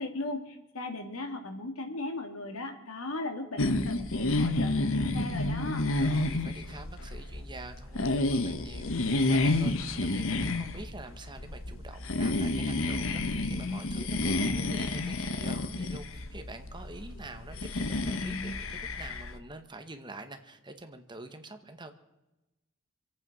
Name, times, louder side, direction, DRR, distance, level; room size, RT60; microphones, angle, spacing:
voice 1, 0.0-5.8, left 2 dB, 85° left, 5 dB, 2.4 m, -37 dB
sound 1, 3.6-19.4, left 2 dB, 70° left, 1.1 m, -30 dB
voice 2, 6.0-21.9, right 2 dB, 20° right, 8 dB, 1.1 m, -46 dB
26.5 x 8.9 x 6.1 m, 1.0 s
head